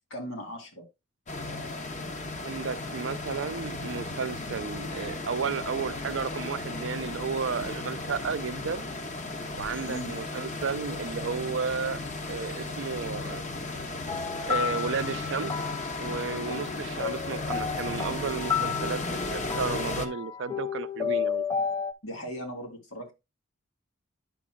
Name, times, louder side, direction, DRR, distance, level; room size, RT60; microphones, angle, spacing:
voice 1, 0.1-0.8 9.9-10.1 22.0-23.1, equal, 85° left, 2.4 m, -38 dB
sound 1, 1.3-20.1, left 2 dB, 35° left, 0.9 m, -35 dB
voice 2, 2.4-8.9 9.6-12.0 12.3-13.5 14.5-15.6 16.0-21.5, right 5 dB, 60° right, 0.5 m, -33 dB
sound 2, 14.1-21.9, left 7 dB, 20° left, 0.4 m, -32 dB
9.1 x 6.1 x 2.2 m
head